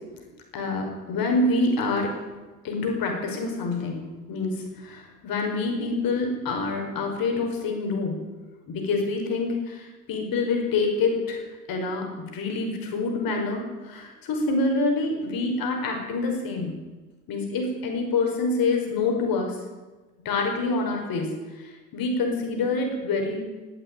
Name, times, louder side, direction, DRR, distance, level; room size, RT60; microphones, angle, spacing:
voice 1, 0.5-2.1 2.6-8.1 8.7-11.4 11.7-16.7 17.3-19.6 20.3-23.4, left 3 dB, 50° left, 2 dB, 5.3 m, -26 dB
17.5 x 8.8 x 9.1 m, 1.2 s
supercardioid pair, 90°, 43 cm